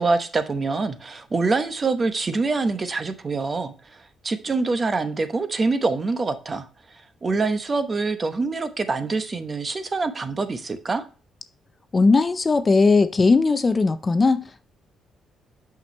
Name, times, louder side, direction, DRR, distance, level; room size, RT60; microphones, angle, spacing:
voice 1, 0.0-3.7 4.2-6.7 7.2-11.0, right 3 dB, 35° right, 0.9 m, -25 dB
voice 2, 11.9-14.6, left 3 dB, 30° left, 0.5 m, -18 dB
6.0 x 5.7 x 3.1 m
cardioid pair, 90°, 0 cm